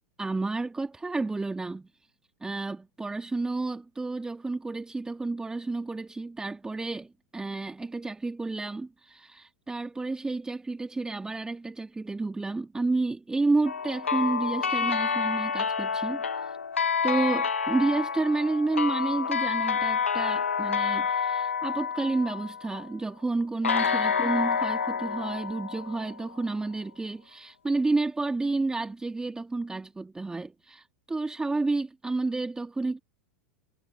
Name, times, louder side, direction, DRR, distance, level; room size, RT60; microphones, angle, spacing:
voice 1, 0.2-1.9 2.4-16.6 17.0-33.0, right 3 dB, 10° right, 2.5 m, -30 dB
sound 1, 13.6-22.9 23.6-26.5, left 6 dB, 85° left, 1.4 m, -28 dB
figure-of-eight pair, 90°, 7 cm